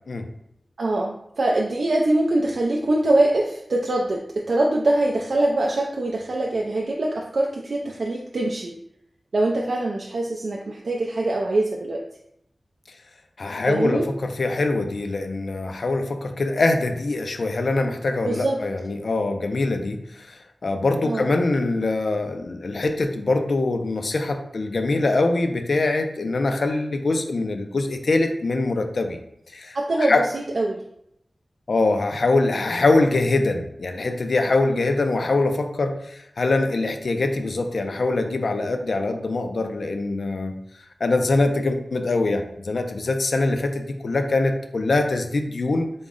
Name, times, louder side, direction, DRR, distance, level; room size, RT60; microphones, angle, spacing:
voice 1, 0.8-8.7 9.3-12.0 13.7-14.1 18.2-18.6 21.0-21.3 29.7-30.1 30.6-30.8 34.8-34.9, right 2 dB, 85° right, -1 dB, 0.3 m, -23 dB
voice 2, 13.4-29.2 29.5-30.3 31.7-40.5 41.0-45.9, left 2 dB, 75° left, 6 dB, 0.3 m, -23 dB
3.7 x 2.0 x 3.6 m, 0.76 s
wide cardioid pair, 85°, 0 cm